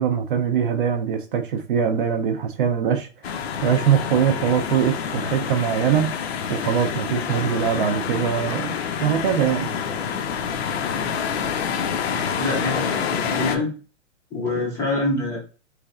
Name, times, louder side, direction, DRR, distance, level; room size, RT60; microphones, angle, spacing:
voice 1, 0.0-3.1 3.6-6.1 6.5-8.8 9.0-9.7, right 8 dB, 45° right, 0.5 m, -22 dB
sound 1, 3.2-13.6, left 7 dB, 55° left, 0.6 m, -27 dB
voice 2, 12.4-13.7 14.3-15.4, left 2 dB, 10° left, 0.5 m, -25 dB
3.6 x 3.2 x 2.4 m
hypercardioid pair, 145°, 38 cm